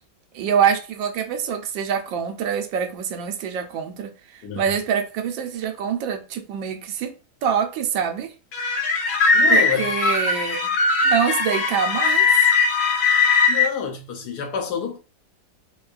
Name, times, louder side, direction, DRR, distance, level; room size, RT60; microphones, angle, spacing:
voice 1, 0.3-7.1 7.4-8.3 9.5-10.7 11.0-12.3, right 7 dB, 75° right, 1.3 m, -25 dB
sound 1, 8.5-13.7, left 4 dB, 85° left, 1.7 m, -19 dB
voice 2, 9.3-9.9 13.5-15.0, left 7 dB, 65° left, 1.1 m, -28 dB
4.5 x 2.2 x 2.4 m
omnidirectional pair, 2.1 m